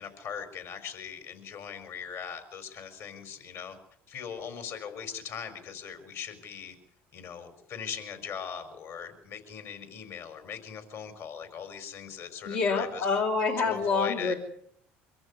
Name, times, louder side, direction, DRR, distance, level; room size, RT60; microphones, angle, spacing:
voice 1, 0.0-3.8 4.1-6.7 7.1-13.1 13.6-14.3, left 7 dB, 65° left, 9 dB, 4.6 m, -40 dB
voice 2, 12.4-14.3, left 4 dB, 85° left, 0 dB, 4.3 m, -27 dB
24.5 x 14.0 x 9.7 m, 0.65 s
supercardioid pair, 75°, 5 cm